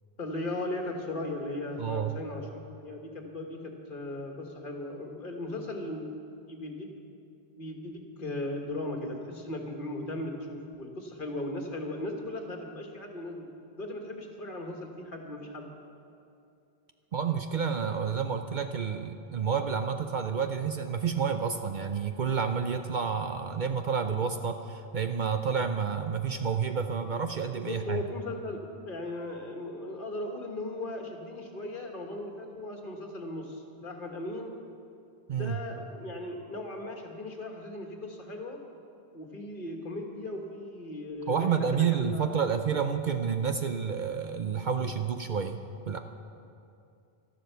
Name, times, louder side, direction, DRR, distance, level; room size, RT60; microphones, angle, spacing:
voice 1, 0.2-6.1 6.4-6.9 7.6-13.4 13.8-15.7 27.6-28.6 28.8-34.5 35.3-38.6 39.1-42.4, left 1 dB, 55° left, 2 dB, 1.7 m, -37 dB
voice 2, 1.8-2.1 17.1-28.0 35.3-35.6 41.3-45.6 45.9-46.0, right 6 dB, 55° right, 7 dB, 0.6 m, -29 dB
12.5 x 12.0 x 6.7 m, 2.6 s
omnidirectional pair, 1.1 m